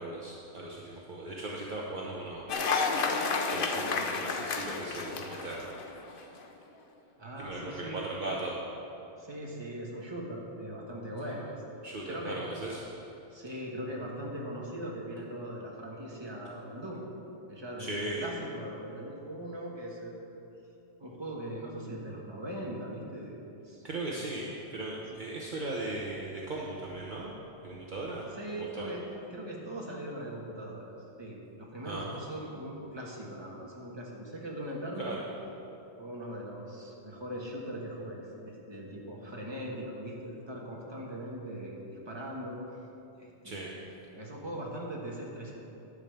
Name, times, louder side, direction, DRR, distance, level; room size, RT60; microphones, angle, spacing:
voice 1, 0.0-2.4 3.0-5.7 6.0-6.3 7.4-8.6 11.8-12.8 17.8-18.3 23.8-27.3 27.6-28.2 28.6-28.9 31.8-32.1 35.0-35.2 43.4-43.7, right 2 dB, 50° right, -4 dB, 1.1 m, -38 dB
Cheering / Applause, 2.5-6.2, left 4 dB, 60° left, 0.9 m, -31 dB
voice 2, 7.2-8.0 9.2-11.6 12.1-12.4 13.3-17.0 17.5-20.4 21.0-23.8 24.3-24.4 25.1-25.2 28.3-35.2 36.0-42.6 43.2-43.9 44.1-45.5, right 1 dB, 25° right, -3 dB, 1.5 m, -40 dB
11.0 x 5.2 x 7.0 m, 2.8 s
omnidirectional pair, 1.1 m